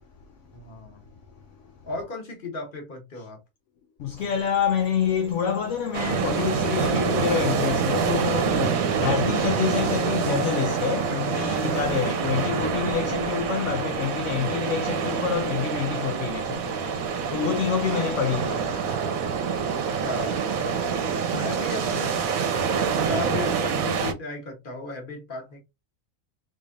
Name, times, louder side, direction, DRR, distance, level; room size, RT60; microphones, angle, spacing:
voice 1, 0.5-1.0 1.8-3.4 19.7-20.8 21.3-22.3 22.7-25.6, left 3 dB, 40° left, 1.4 m, -35 dB
voice 2, 4.0-19.0 19.8-20.0 21.0-21.3, left 8 dB, 65° left, 0.8 m, -27 dB
sound 1, 4.2-22.1, right 4 dB, 35° right, 1.3 m, -46 dB
sound 2, 5.9-24.1, right 6 dB, 75° right, 1.1 m, -26 dB
3.7 x 3.2 x 2.5 m
omnidirectional pair, 1.5 m